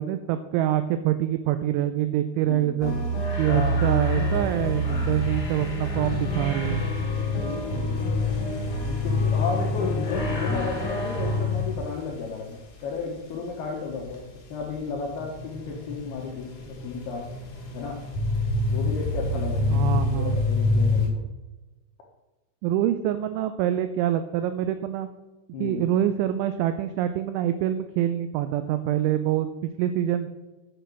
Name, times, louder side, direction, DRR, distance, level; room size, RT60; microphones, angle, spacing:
voice 1, 0.0-3.0 3.4-6.8 19.7-20.4 22.6-25.1 25.6-30.3, right 12 dB, 90° right, 10 dB, 2.7 m, -25 dB
sound 1, 2.8-11.9 13.9-21.1, left 2 dB, 55° left, 2.9 m, -27 dB
voice 2, 3.5-3.8 7.3-8.2 8.8-14.2 14.5-17.2 17.7-18.0 18.7-21.2 25.5-25.8, left 5 dB, 80° left, 0 dB, 2.3 m, -33 dB
7.8 x 6.8 x 6.1 m, 1.1 s
omnidirectional pair, 5.9 m